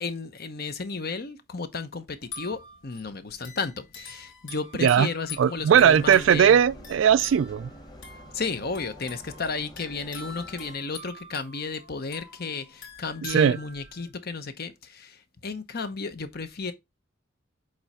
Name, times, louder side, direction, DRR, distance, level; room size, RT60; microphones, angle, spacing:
voice 1, 0.0-6.6 8.3-16.7, left 4 dB, 55° left, 0.9 m, -33 dB
sound 1, 2.2-14.1, left 3 dB, 85° left, 3.1 m, -45 dB
voice 2, 5.4-7.7 13.2-13.6, right 8 dB, 80° right, 0.3 m, -19 dB
Engine, 5.7-10.7, equal, 20° left, 1.4 m, -47 dB
7.8 x 3.3 x 4.2 m
head